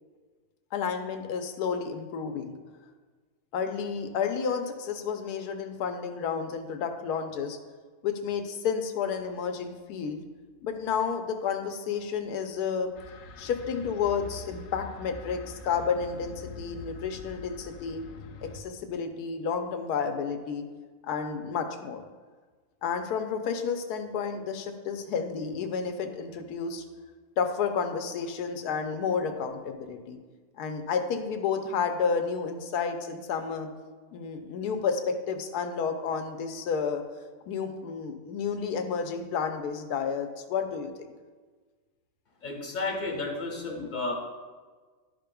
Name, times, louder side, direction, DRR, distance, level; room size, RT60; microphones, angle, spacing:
voice 1, 0.7-2.5 3.5-7.6 8.0-10.2 10.6-12.9 13.4-18.0 18.4-20.7 21.1-22.0 22.8-26.8 27.4-30.2 30.6-33.7 34.1-37.0 37.5-40.9, left 6 dB, 90° left, 6 dB, 1.2 m, -31 dB
sound 1, 12.9-18.6, left 4 dB, 65° left, 0.7 m, -44 dB
voice 2, 42.4-44.1, left 3 dB, 30° left, -1 dB, 1.3 m, -32 dB
12.0 x 5.1 x 2.3 m, 1.4 s
omnidirectional pair, 1.6 m